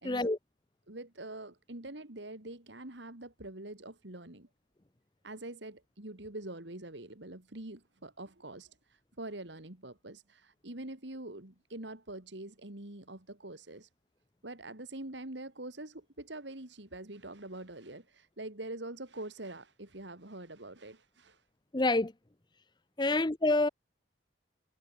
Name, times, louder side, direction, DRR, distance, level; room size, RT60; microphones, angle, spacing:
voice 1, 0.0-0.4 21.7-22.1 23.0-23.7, left 2 dB, 25° left, 0.7 m, -27 dB
voice 2, 0.9-4.5 5.2-13.9 14.4-21.4, right 2 dB, 70° right, 2.9 m, -45 dB
head